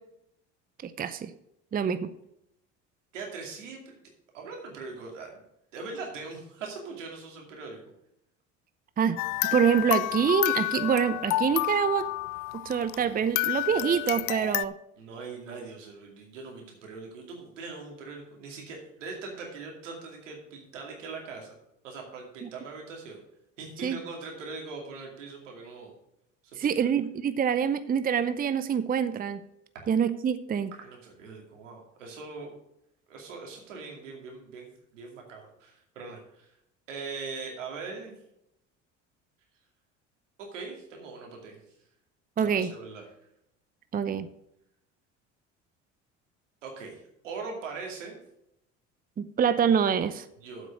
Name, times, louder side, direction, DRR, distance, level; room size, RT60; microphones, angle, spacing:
voice 1, 0.8-1.3 1.7-2.1 9.0-9.2 9.5-12.1 12.5-14.7 22.4-22.5 23.8-24.0 26.6-29.4 29.9-30.7 42.4-42.7 43.9-44.3 49.2-50.2, right 7 dB, 25° right, 13 dB, 0.6 m, -26 dB
voice 2, 3.1-4.0 4.3-5.3 5.7-7.8 15.0-21.5 21.8-23.2 23.6-25.9 26.4-26.7 30.7-32.5 33.1-36.5 36.9-38.2 40.4-41.6 42.4-43.1 46.6-48.2 50.4-50.7, right 4 dB, 90° right, 1 dB, 2.5 m, -41 dB
sound 1, 9.2-13.1 13.4-14.6, left 19 dB, 55° left, 0.5 m, -30 dB
7.8 x 6.1 x 7.8 m, 0.80 s
hypercardioid pair, 70°, 36 cm